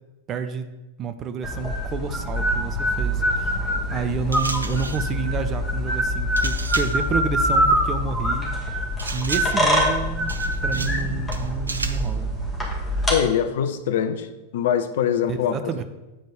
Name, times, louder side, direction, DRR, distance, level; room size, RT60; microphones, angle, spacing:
voice 1, 0.3-0.7 1.0-3.6 3.9-8.5 9.1-12.3 15.3-15.8, right 6 dB, 30° right, 0.5 m, -30 dB
sound 1, 1.4-13.1, equal, 15° left, 2.1 m, -24 dB
sound 2, 4.3-5.1 6.4-7.1 9.0-9.7 10.3-11.0 11.3-12.1, right 3 dB, 80° right, 0.5 m, -33 dB
voice 2, 13.1-14.3 14.5-15.6, left 8 dB, 55° left, 0.6 m, -23 dB
8.6 x 4.1 x 4.8 m
figure-of-eight pair, 90°, 0 cm